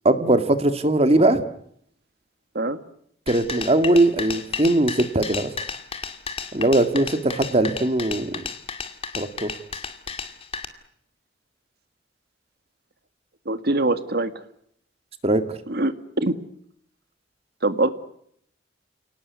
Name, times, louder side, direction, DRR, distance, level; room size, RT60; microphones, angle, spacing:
voice 1, 0.0-1.4 3.3-5.5 6.5-8.4 9.2-9.5 15.2-15.6, right 2 dB, 35° right, 9 dB, 2.1 m, -20 dB
sound 1, 3.3-10.6, left 5 dB, 30° left, 2.4 m, -33 dB
voice 2, 13.5-14.4 15.7-16.4 17.6-17.9, right 2 dB, 55° right, 11 dB, 2.0 m, -23 dB
30.0 x 19.0 x 9.7 m, 0.70 s
head